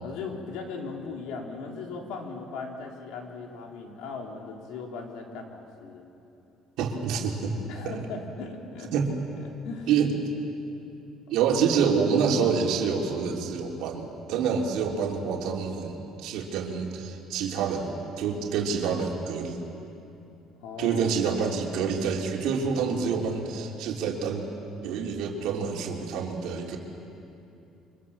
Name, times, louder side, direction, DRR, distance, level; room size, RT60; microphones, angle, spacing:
voice 1, 0.0-6.0 7.7-8.9 9.3-9.9 20.6-21.1, left 4 dB, 80° left, 1 dB, 3.9 m, -38 dB
voice 2, 6.8-7.5 7.8-8.0 8.9-9.1 9.9-10.1 11.3-19.6 20.8-24.5 24.8-26.8, right 6 dB, 75° right, 0 dB, 3.4 m, -27 dB
29.0 x 25.0 x 7.3 m, 2.8 s
cardioid pair, 145°, 0 cm